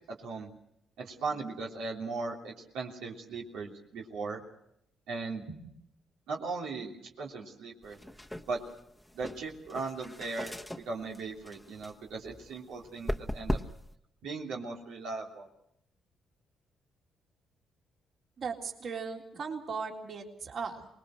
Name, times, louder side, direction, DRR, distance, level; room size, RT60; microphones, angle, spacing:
voice 1, 0.1-0.5 1.0-4.4 5.1-5.6 6.3-8.0 8.5-8.6 9.1-13.6 14.2-15.5, right 4 dB, 90° right, -2 dB, 3.2 m, -38 dB
sound 1, 7.8-14.0, left 1 dB, 5° left, 1.1 m, -39 dB
voice 2, 18.4-20.9, right 5 dB, 55° right, 1 dB, 3.6 m, -37 dB
25.0 x 20.5 x 6.4 m, 0.77 s
cardioid pair, 90°, 0 cm